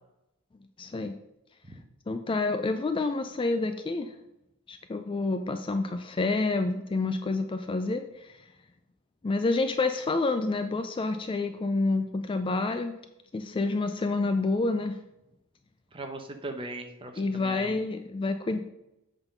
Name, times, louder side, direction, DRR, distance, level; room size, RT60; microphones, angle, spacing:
voice 1, 0.8-1.2 2.1-4.1 4.7-8.4 9.2-12.9 13.3-15.0 17.2-18.6, left 3 dB, 25° left, 8 dB, 0.3 m, -28 dB
voice 2, 15.9-17.8, right 2 dB, 25° right, 5 dB, 0.9 m, -39 dB
7.9 x 3.8 x 5.7 m, 0.90 s
head